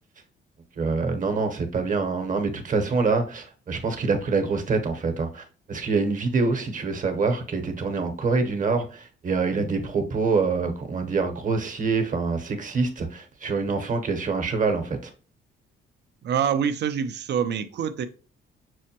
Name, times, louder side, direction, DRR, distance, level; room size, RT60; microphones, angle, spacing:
voice 1, 0.8-15.1, right 4 dB, 40° right, 0.9 m, -25 dB
voice 2, 16.2-18.1, right 8 dB, 60° right, 0.6 m, -25 dB
6.1 x 2.2 x 2.8 m
cardioid pair, 90°, 20 cm